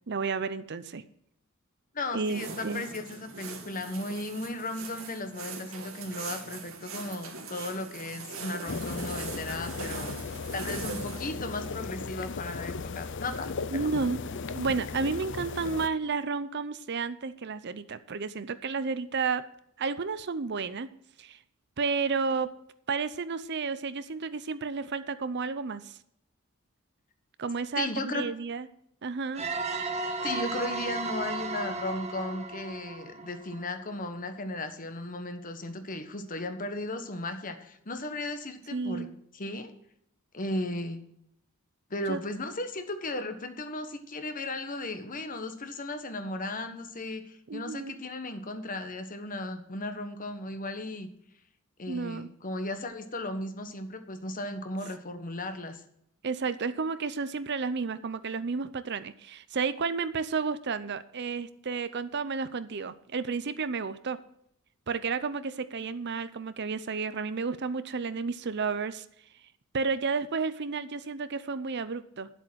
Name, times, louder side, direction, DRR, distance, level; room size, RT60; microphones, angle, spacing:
voice 1, 0.1-1.0 2.1-2.9 13.7-14.2 14.5-19.4 19.8-20.9 21.2-21.4 21.8-22.5 22.9-25.9 27.4-28.7 29.0-29.5 38.7-39.1 42.1-42.2 47.5-47.9 51.9-52.3 56.2-64.2 64.9-69.0 69.7-72.3, right 4 dB, 55° right, 13 dB, 0.7 m, -31 dB
voice 2, 1.9-10.1 10.5-13.9 27.8-28.3 30.2-39.1 39.3-39.7 40.3-41.0 41.9-51.1 51.8-55.8, left 2 dB, 40° left, 8 dB, 1.3 m, -36 dB
sound 1, 2.2-11.3, right 4 dB, 85° right, 2.1 m, -41 dB
sound 2, 8.7-15.9, left 4 dB, 60° left, 0.6 m, -36 dB
sound 3, 29.3-33.9, right 3 dB, 30° right, 1.3 m, -35 dB
10.5 x 7.9 x 6.3 m, 0.72 s
head